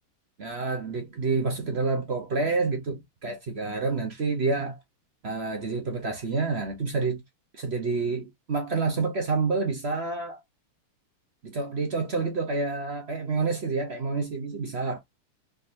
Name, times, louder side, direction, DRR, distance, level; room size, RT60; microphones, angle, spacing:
voice 1, 0.4-4.8 5.2-7.2 7.5-10.4 11.4-15.0, right 4 dB, 50° right, 0.7 m, -28 dB
4.5 x 3.8 x 2.7 m
omnidirectional pair, 2.3 m